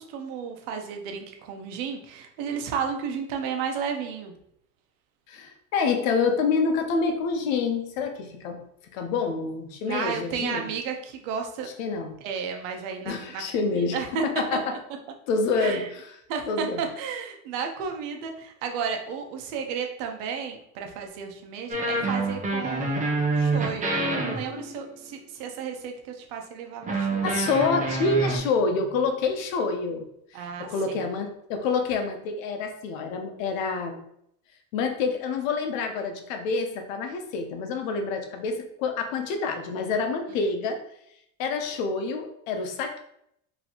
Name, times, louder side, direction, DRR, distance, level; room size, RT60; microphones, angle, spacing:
voice 1, 0.0-4.4 9.8-11.7 12.2-13.4 13.9-14.2 15.6-15.9 16.3-27.4 30.3-31.0 40.3-40.4, right 6 dB, 70° right, 4 dB, 0.9 m, -33 dB
voice 2, 5.3-8.6 8.9-10.7 11.6-12.1 13.0-14.0 14.2-14.7 15.3-16.1 16.5-16.8 27.2-30.1 30.3-34.0 34.7-40.8 41.4-43.0, left 4 dB, 90° left, 5 dB, 0.8 m, -27 dB
sound 1, 21.7-25.0 26.8-28.4, right 2 dB, 20° right, 0.7 m, -27 dB
4.1 x 3.0 x 3.0 m, 0.74 s
supercardioid pair, 130°, 39 cm